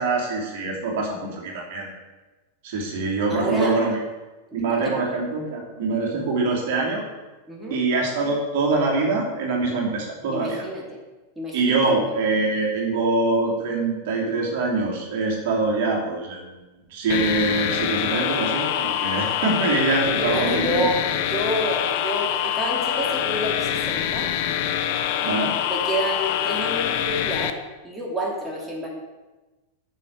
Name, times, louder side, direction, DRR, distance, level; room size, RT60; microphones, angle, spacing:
voice 1, 0.0-1.9 2.6-4.0 4.5-7.0 7.7-10.7 11.5-16.5 16.9-20.8 25.2-25.5, right 3 dB, 50° right, -2 dB, 2.9 m, -24 dB
voice 2, 3.3-3.8 4.8-5.0 7.5-7.8 10.3-10.8 11.4-12.1 20.2-24.3 25.7-27.6 27.8-28.9, equal, 10° right, -3 dB, 2.7 m, -28 dB
sound 1, 17.1-27.5, left 11 dB, 50° left, 0.8 m, -25 dB
9.0 x 6.7 x 8.3 m, 1.2 s
figure-of-eight pair, 90°, 0 cm